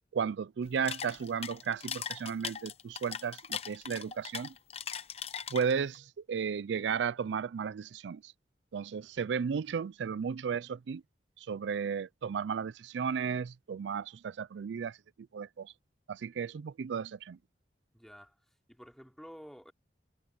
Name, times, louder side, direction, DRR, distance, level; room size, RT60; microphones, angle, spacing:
voice 1, 0.1-4.5 5.5-8.3 8.7-11.0 11.4-15.0 15.3-15.7 16.1-17.4, right 6 dB, 80° right, 0.4 m, -34 dB
sound 1, 0.6-6.0, left 7 dB, 35° left, 0.8 m, -39 dB
voice 2, 17.9-18.3 18.7-19.7, equal, ahead, 3.3 m, -51 dB
head